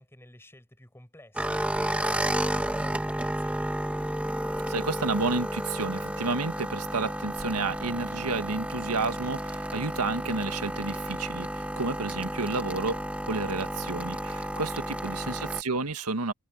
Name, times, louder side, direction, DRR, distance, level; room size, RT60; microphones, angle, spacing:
voice 1, 0.0-3.7 15.1-15.5, left 1 dB, 10° left, 7.2 m, -51 dB
sound 1, 1.4-15.6, right 1 dB, 5° right, 1.3 m, -32 dB
voice 2, 4.7-16.3, right 3 dB, 90° right, 1.7 m, -31 dB
head